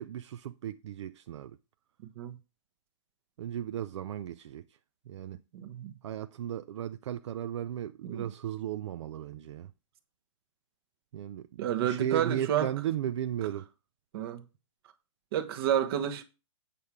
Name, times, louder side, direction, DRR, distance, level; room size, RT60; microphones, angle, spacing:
voice 1, 0.0-1.6 3.4-4.6 5.1-5.4 6.0-9.7 11.1-13.7, right 11 dB, 60° right, 0.5 m, -35 dB
voice 2, 5.5-5.9 8.0-8.3 11.6-12.7 14.1-14.4 15.3-16.2, right 10 dB, 45° right, 1.2 m, -30 dB
8.4 x 5.8 x 4.8 m
hypercardioid pair, 140°, 17 cm